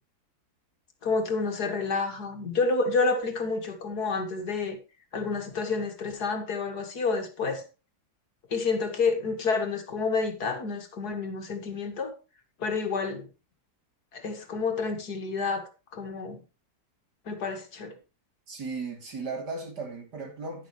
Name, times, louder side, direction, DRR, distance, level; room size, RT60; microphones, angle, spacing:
voice 1, 1.0-4.8 5.1-7.7 8.5-12.1 12.6-13.2 14.1-16.4 17.3-17.9, left 4 dB, 70° left, 2.4 m, -29 dB
voice 2, 18.5-20.7, right 4 dB, 75° right, 3.7 m, -36 dB
11.5 x 11.0 x 3.2 m
omnidirectional pair, 1.8 m